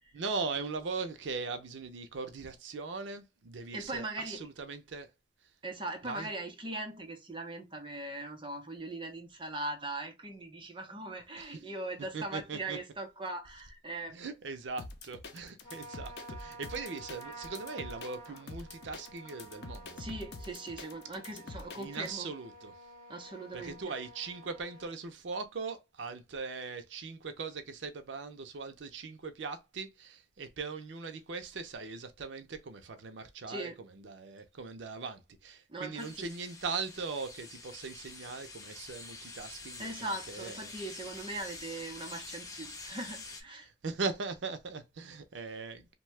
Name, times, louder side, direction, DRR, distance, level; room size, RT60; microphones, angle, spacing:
voice 1, 0.1-5.1 6.0-6.3 11.4-11.5 12.1-12.8 14.1-20.0 21.8-22.7 23.5-33.7 34.0-40.7 43.6-45.9, right 4 dB, 90° right, 0.5 m, -40 dB
voice 2, 3.7-4.4 5.6-14.2 20.0-22.3 23.1-23.9 33.5-33.8 35.7-36.3 39.8-43.7, right 2 dB, 25° right, 0.7 m, -40 dB
sound 1, 14.8-22.1, left 3 dB, 60° left, 0.6 m, -46 dB
Trumpet, 15.6-25.0, right 2 dB, 35° left, 1.6 m, -50 dB
sound 2, 36.0-43.4, left 3 dB, 20° left, 0.6 m, -47 dB
2.7 x 2.2 x 3.1 m
head